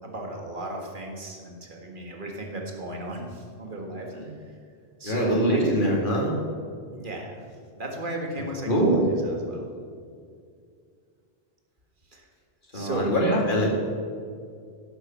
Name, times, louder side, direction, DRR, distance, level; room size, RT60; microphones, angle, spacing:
voice 1, 0.0-4.1 4.5-4.6 5.0-5.7 6.9-7.4 7.8-9.6 12.1-12.3 12.7-13.1, right 1 dB, 50° right, 1 dB, 1.9 m, -35 dB
voice 2, 5.0-6.3 8.7-9.0 12.7-13.7, right 1 dB, 50° left, -2 dB, 2.6 m, -23 dB
11.5 x 8.0 x 7.2 m, 2.2 s
omnidirectional pair, 1.1 m